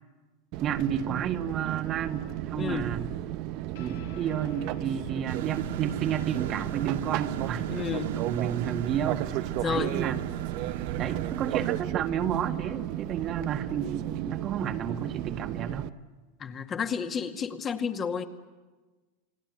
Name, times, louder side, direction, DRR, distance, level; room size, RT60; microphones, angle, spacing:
Fixed-wing aircraft airplane, 0.5-15.9, right 14 dB, 55° right, 0.9 m, -34 dB
voice 1, 0.6-3.1 3.7-7.7 8.2-10.2 11.0-15.9, right 9 dB, 40° right, 5 dB, 1.8 m, -31 dB
voice 2, 2.6-2.9 7.7-8.2 9.6-10.0 16.4-18.2, left 6 dB, 30° left, 5 dB, 2.1 m, -31 dB
sound 1, 3.7-10.5, left 5 dB, 85° left, 5.1 m, -51 dB
sound 2, 5.3-11.8, right 8 dB, 80° right, 2.1 m, -38 dB
29.0 x 20.0 x 9.3 m, 1.3 s
hypercardioid pair, 115°, 0 cm